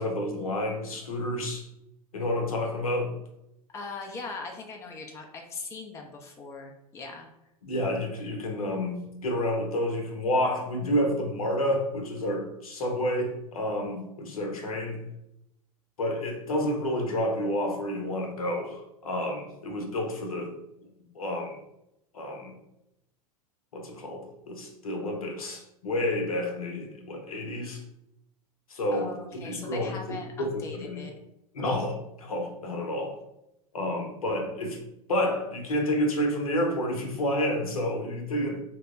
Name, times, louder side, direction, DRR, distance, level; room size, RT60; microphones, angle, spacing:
voice 1, 0.0-1.6 2.1-3.1 7.6-15.0 16.0-20.5 21.1-21.6 22.1-22.6 23.7-27.8 28.7-31.1 31.5-33.2 33.7-34.8 35.1-38.6, left 1 dB, 70° left, 2 dB, 0.7 m, -29 dB
voice 2, 3.7-7.3 28.9-31.2, left 3 dB, 15° left, 2 dB, 0.4 m, -40 dB
2.8 x 2.1 x 3.5 m, 0.85 s
figure-of-eight pair, 90°, 19 cm